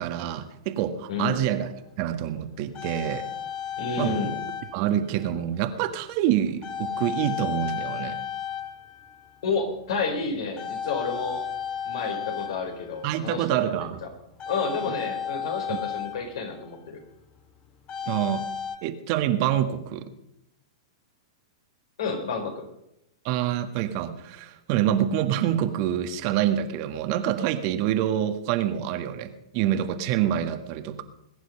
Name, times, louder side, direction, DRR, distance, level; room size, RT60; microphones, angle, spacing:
voice 1, 0.0-1.7 2.0-3.3 4.0-4.2 4.7-8.2 13.0-14.0 15.7-15.8 18.1-18.4 18.8-20.1 23.2-31.0, right 11 dB, 45° right, 8 dB, 1.5 m, -26 dB
voice 2, 1.1-1.4 3.8-4.4 9.4-11.4 11.9-14.1 14.5-17.0 22.0-22.7, left 4 dB, 65° left, 4 dB, 4.4 m, -30 dB
sound 1, 1.3-1.4 2.3-4.9 5.2-5.5 6.6-9.4 9.7-10.1 10.6-13.2 14.4-16.8 17.9-18.8, left 8 dB, 30° left, 2.0 m, -34 dB
21.0 x 10.0 x 5.4 m, 0.82 s
hypercardioid pair, 105°, 3 cm